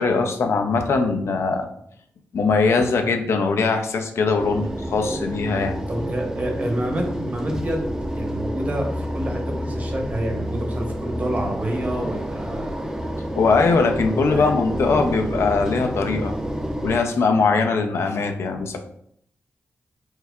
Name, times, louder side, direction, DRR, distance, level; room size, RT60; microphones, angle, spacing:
voice 1, 0.0-1.7 2.3-5.8 13.3-16.3 16.8-18.8, left 4 dB, 70° left, 5 dB, 0.4 m, -21 dB
sound 1, 4.4-17.0, equal, 15° right, 0.5 m, -29 dB
voice 2, 5.9-7.8 8.1-12.7 14.1-14.5, right 1 dB, 35° right, 1 dB, 0.9 m, -28 dB
4.5 x 2.3 x 2.3 m, 0.69 s
cardioid pair, 75°, 5 cm